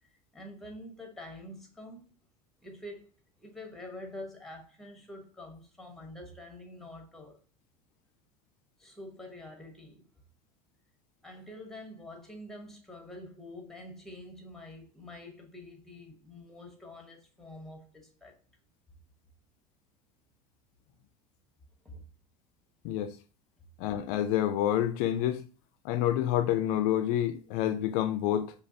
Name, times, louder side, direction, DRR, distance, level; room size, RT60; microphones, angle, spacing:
voice 1, 0.3-2.2 2.6-3.0 3.4-7.4 8.8-10.0 11.2-18.4 21.8-22.0, left 1 dB, ahead, 1.2 m, -46 dB
voice 2, 23.8-25.4 25.8-28.5, left 11 dB, 60° left, 0.5 m, -28 dB
5.0 x 2.1 x 2.8 m
hypercardioid pair, 75°, 20 cm